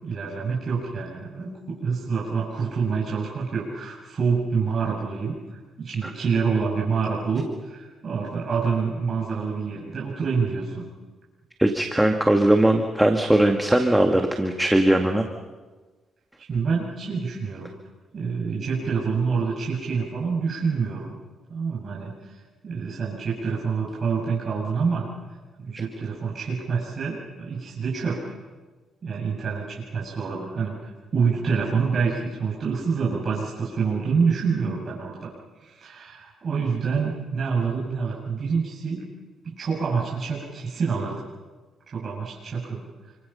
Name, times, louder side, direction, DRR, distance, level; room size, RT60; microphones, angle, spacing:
voice 1, 0.0-10.8 16.4-17.7 18.1-21.1 21.5-22.3 22.6-25.1 25.6-28.3 29.0-35.3 35.6-39.0 39.4-41.2 41.9-42.8, right 5 dB, 45° right, -4 dB, 6.9 m, -27 dB
voice 2, 11.6-15.2, right 1 dB, 5° right, 4 dB, 2.0 m, -20 dB
29.5 x 25.0 x 5.8 m, 1.3 s
cardioid pair, 90°, 0 cm